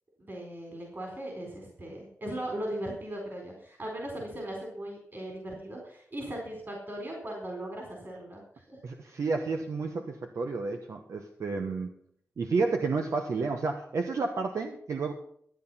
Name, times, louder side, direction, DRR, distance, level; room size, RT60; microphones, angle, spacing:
voice 1, 0.2-8.8 9.0-9.2, right 1 dB, 40° right, 0 dB, 4.3 m, -38 dB
voice 2, 8.8-11.9 12.4-15.1, right 4 dB, 75° right, 4 dB, 1.2 m, -31 dB
13.5 x 9.1 x 5.7 m, 0.64 s
wide cardioid pair, 80°, 5 cm